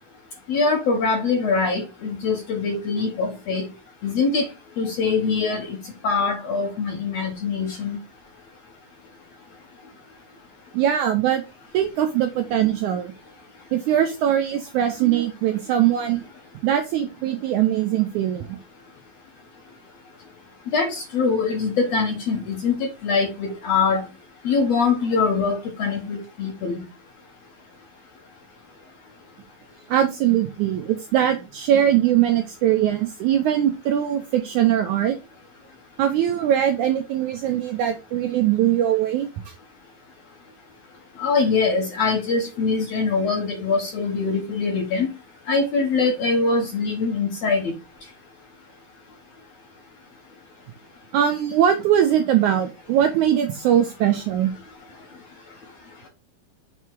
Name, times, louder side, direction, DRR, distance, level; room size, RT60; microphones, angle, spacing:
voice 1, 0.5-3.7 4.0-4.5 4.8-5.8 6.0-8.0 20.7-24.0 24.4-26.8 41.2-45.1 45.5-47.7, left 4 dB, 65° left, 2 dB, 1.7 m, -23 dB
voice 2, 10.7-11.4 11.7-13.1 13.7-16.2 16.6-18.6 29.9-35.2 36.0-39.3 51.1-54.5, right 10 dB, 80° right, 5 dB, 1.8 m, -21 dB
6.6 x 3.5 x 4.5 m, 0.27 s
omnidirectional pair, 4.1 m